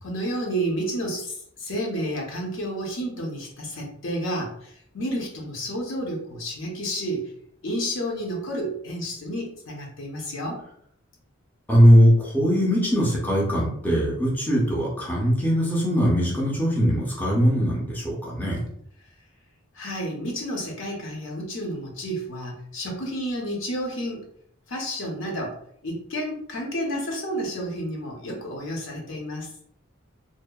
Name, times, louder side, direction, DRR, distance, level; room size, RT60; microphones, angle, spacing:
voice 1, 0.0-7.3 7.6-10.6 19.7-24.3 24.7-25.6 25.8-29.5, equal, 65° left, -1 dB, 0.7 m, -30 dB
voice 2, 11.7-18.6, equal, 10° left, -5 dB, 0.5 m, -20 dB
2.7 x 2.1 x 2.2 m, 0.68 s
head